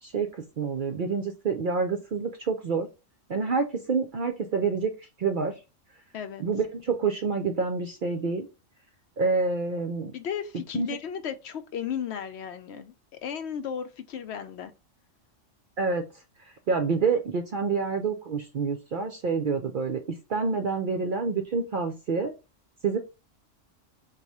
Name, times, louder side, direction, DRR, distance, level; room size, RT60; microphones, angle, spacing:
voice 1, 0.0-2.9 3.3-4.9 5.2-5.5 6.4-8.5 9.2-10.1 10.7-10.9 15.8-16.1 16.7-20.0 20.3-22.3 22.8-23.0, right 4 dB, 60° right, 0.5 m, -27 dB
voice 2, 10.1-12.9 13.2-14.7, left 8 dB, 65° left, 0.8 m, -34 dB
4.1 x 2.3 x 4.7 m
omnidirectional pair, 1.3 m